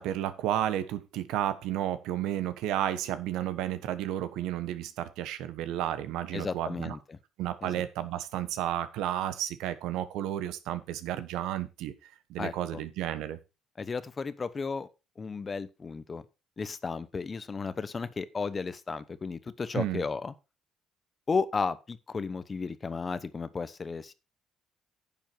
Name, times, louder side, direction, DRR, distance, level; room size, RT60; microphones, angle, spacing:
voice 1, 0.0-7.0 7.4-11.9 12.3-13.4 19.7-20.0, right 12 dB, 85° right, 1.2 m, -32 dB
voice 2, 6.3-7.2 7.6-7.8 12.4-12.8 13.8-14.9 15.2-16.2 16.6-20.3 21.3-24.1, left 4 dB, 30° left, 0.9 m, -34 dB
10.5 x 7.1 x 4.6 m
cardioid pair, 105°, 0 cm